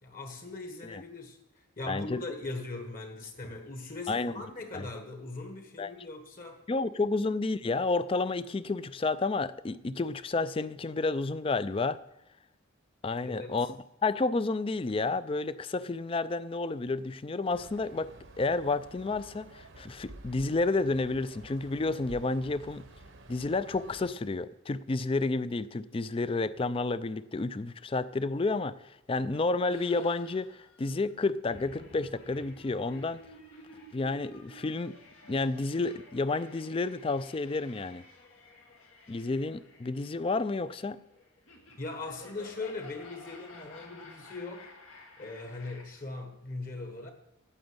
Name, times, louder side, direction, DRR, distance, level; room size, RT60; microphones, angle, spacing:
voice 1, 0.0-6.6 13.2-13.5 41.8-44.7 45.2-47.1, left 3 dB, 40° left, 4 dB, 1.4 m, -40 dB
voice 2, 1.9-2.2 4.1-4.3 4.7-4.9 5.8-5.9 6.7-12.0 13.0-13.7 14.0-22.8 23.3-33.2 33.9-34.9 35.3-38.0 39.1-41.0, left 3 dB, 25° left, 16 dB, 0.3 m, -30 dB
sound 1, 17.5-24.1, right 2 dB, 65° right, 0.9 m, -51 dB
sound 2, 29.7-45.8, left 2 dB, 85° left, 2.1 m, -53 dB
9.0 x 8.8 x 7.9 m, 0.90 s
head